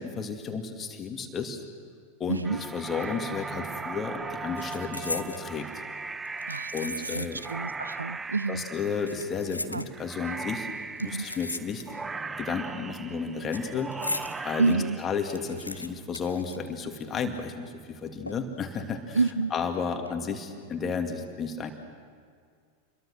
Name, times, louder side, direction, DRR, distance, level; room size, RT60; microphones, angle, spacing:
voice 1, 0.0-1.6 2.2-5.7 6.7-7.4 8.5-10.7 11.0-11.8 12.4-13.9 14.4-19.2 19.5-21.7, left 5 dB, 25° left, 4 dB, 2.6 m, -32 dB
voice 2, 2.3-2.6 6.5-8.7 9.7-9.9 11.0-11.3 14.6-15.0 19.1-19.5, right 3 dB, 80° right, 18 dB, 0.6 m, -28 dB
sound 1, 2.4-15.8, right 4 dB, 15° right, 0.8 m, -38 dB
sound 2, 3.6-3.8 4.1-5.5 6.2-7.6 7.9-8.0 8.9-10.3 11.0-12.2 12.4-14.4 14.8-14.9 15.1-17.2 17.5-17.6 18.3-18.7 19.1-19.3, left 2 dB, 85° left, 0.9 m, -38 dB
28.5 x 22.5 x 6.5 m, 2.1 s
figure-of-eight pair, 90°, 0 cm